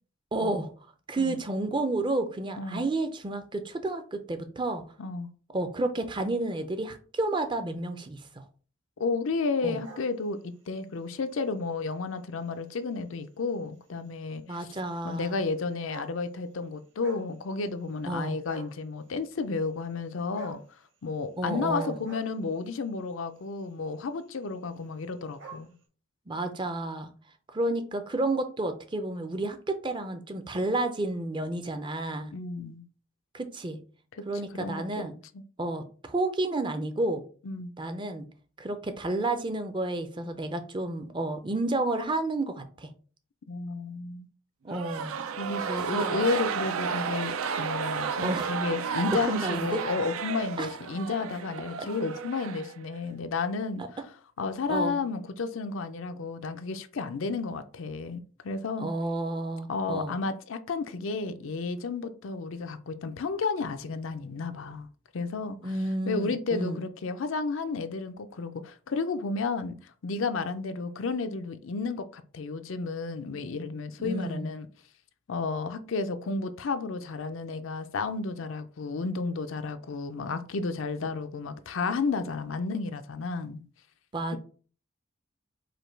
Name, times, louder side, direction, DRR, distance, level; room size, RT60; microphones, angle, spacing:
voice 1, 0.3-0.7 1.1-4.8 5.5-8.4 9.6-9.8 14.5-15.3 18.1-18.4 21.4-22.0 26.3-27.1 27.5-32.3 33.3-33.8 34.3-35.1 35.6-37.2 37.8-38.3 38.6-42.9 44.6-45.1 45.7-46.2 48.2-48.5 49.3-49.8 50.6-50.7 51.8-51.9 53.8-53.9 54.7-55.0 58.8-60.1 65.6-66.8 74.0-74.5 84.1-84.4, right 2 dB, 20° right, 0.5 m, -31 dB
voice 2, 5.0-5.3 9.0-14.7 15.0-20.6 21.0-25.7 32.3-32.8 34.5-35.1 35.3-35.4 37.4-37.7 43.5-44.3 45.4-53.8 54.4-58.9 59.7-64.9 65.1-65.8 66.1-74.7 75.3-83.6, left 4 dB, 70° left, 0.5 m, -32 dB
sound 1, 9.6-10.8 11.4-11.6 12.5-12.6 12.7-12.8 13.1-13.2 14.4-14.5 15.4-15.5 15.7-16.5 16.8-17.3 17.6-18.2 18.5-18.9 20.3-20.7 21.6-22.8 23.7-23.9 24.2-24.3 24.5-24.6 24.8-25.7, right 2 dB, 60° right, 1.3 m, -46 dB
sound 2, 44.7-53.1, right 6 dB, 85° right, 0.5 m, -33 dB
5.0 x 2.2 x 4.5 m
head